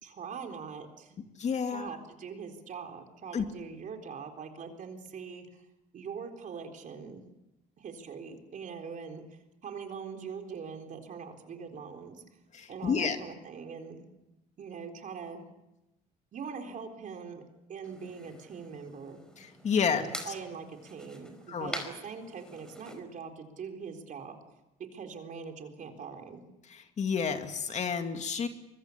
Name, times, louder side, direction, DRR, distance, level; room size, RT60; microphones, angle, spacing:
voice 1, 0.0-1.2 1.7-5.6 5.9-7.3 7.8-12.2 12.7-14.0 14.6-15.4 16.3-17.4 17.7-19.2 19.9-24.4 24.9-26.4, right 6 dB, 50° right, 4 dB, 3.9 m, -42 dB
voice 2, 1.4-1.9 3.3-3.4 12.5-13.2 19.4-20.1 21.5-21.8 27.0-28.5, left 6 dB, 45° left, 6 dB, 2.5 m, -30 dB
sound 1, 17.8-23.0, equal, 5° left, 4.9 m, -45 dB
24.5 x 22.0 x 8.5 m, 0.95 s
cardioid pair, 110°, 17 cm